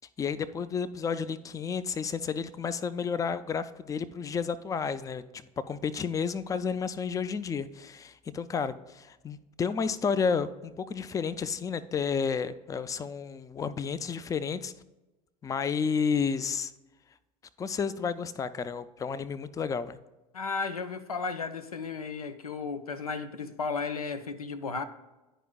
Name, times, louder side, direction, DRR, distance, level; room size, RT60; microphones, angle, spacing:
voice 1, 0.2-14.7 15.4-16.7 17.6-20.0, left 6 dB, 20° left, 0.4 m, -31 dB
voice 2, 20.3-24.8, left 4 dB, 90° left, 0.4 m, -34 dB
11.0 x 5.0 x 2.3 m
figure-of-eight pair, 65°, 18 cm